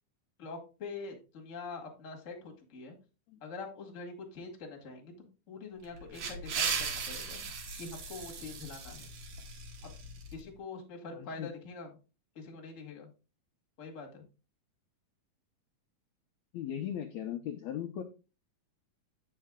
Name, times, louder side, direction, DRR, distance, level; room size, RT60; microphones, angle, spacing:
voice 1, 0.4-2.9 3.4-7.4 7.8-9.1 9.8-9.9 10.3-11.9 12.3-13.1 13.8-14.2, left 4 dB, 30° left, 2 dB, 1.5 m, -44 dB
sound 1, 5.8-10.4, right 5 dB, 60° right, 2.5 m, -37 dB
voice 2, 11.1-11.5 16.5-18.0, left 10 dB, 75° left, 4 dB, 1.8 m, -38 dB
8.8 x 5.6 x 3.7 m, 0.32 s
omnidirectional pair, 3.7 m